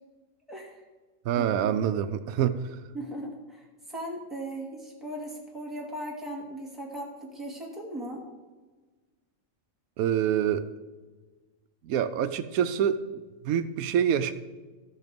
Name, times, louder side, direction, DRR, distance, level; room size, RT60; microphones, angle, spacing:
voice 1, 0.5-0.8 2.9-8.3, right 1 dB, ahead, -3 dB, 2.2 m, -38 dB
voice 2, 1.2-2.8 10.0-10.6 11.8-14.3, right 9 dB, 90° right, 11 dB, 1.0 m, -26 dB
13.0 x 6.4 x 5.2 m, 1.3 s
omnidirectional pair, 1.4 m